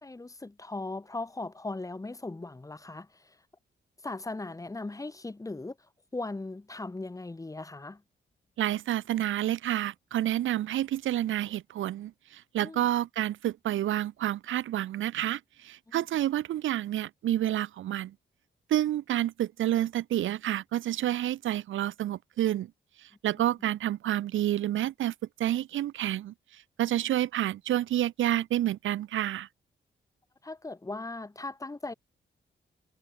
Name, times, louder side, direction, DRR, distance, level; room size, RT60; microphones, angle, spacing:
voice 1, 0.0-3.1 4.0-5.7 6.1-8.0 12.6-12.8 15.9-16.1 30.4-31.9, left 2 dB, 15° left, 3.4 m, -38 dB
voice 2, 8.6-18.1 18.7-22.7 23.2-25.1 25.4-26.3 26.8-29.5, right 13 dB, 90° right, 0.5 m, -29 dB
wide cardioid pair, 150°, 20 cm